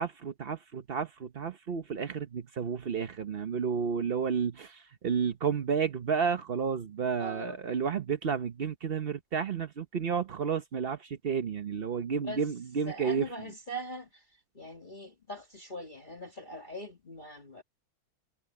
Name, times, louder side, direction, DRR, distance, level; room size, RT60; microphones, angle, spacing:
voice 1, 0.0-13.3, right 6 dB, 60° right, 0.6 m, -31 dB
voice 2, 7.2-7.6 12.2-12.4 12.8-14.2 14.5-17.6, equal, 25° left, 1.5 m, -41 dB
omnidirectional pair, 2.3 m